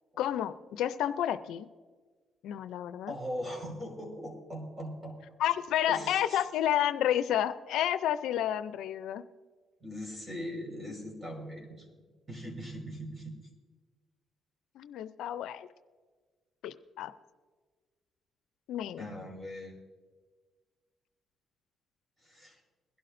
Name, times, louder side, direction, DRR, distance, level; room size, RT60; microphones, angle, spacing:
voice 1, 0.2-1.7 2.4-3.1 5.4-9.2 14.8-15.7 16.6-17.1 18.7-19.1, left 11 dB, 85° left, 12 dB, 0.5 m, -30 dB
voice 2, 3.1-5.2 5.9-6.4 9.8-11.9 12.3-13.5 19.0-19.8 22.2-22.6, equal, 20° right, 0 dB, 4.8 m, -40 dB
22.0 x 12.0 x 2.6 m, 1.4 s
cardioid pair, 90°, 0 cm